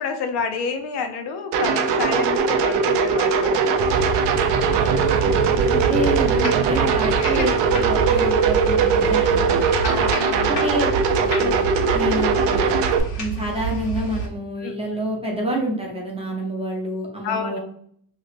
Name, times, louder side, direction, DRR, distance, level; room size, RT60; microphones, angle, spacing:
voice 1, 0.0-3.6 5.3-5.7 7.2-7.6 9.8-10.6 11.4-11.6 14.6-14.7 17.2-17.6, left 5 dB, 60° left, 6 dB, 0.5 m, -29 dB
sound 1, 1.5-13.0, right 5 dB, 70° right, 0.5 m, -20 dB
sound 2, 3.7-14.3, right 4 dB, 80° left, 1.5 m, -28 dB
voice 2, 4.7-9.6 10.5-10.9 11.2-12.7 13.2-17.6, right 1 dB, 15° right, -2 dB, 0.6 m, -28 dB
3.1 x 2.9 x 2.4 m, 0.65 s
cardioid pair, 150°, 44 cm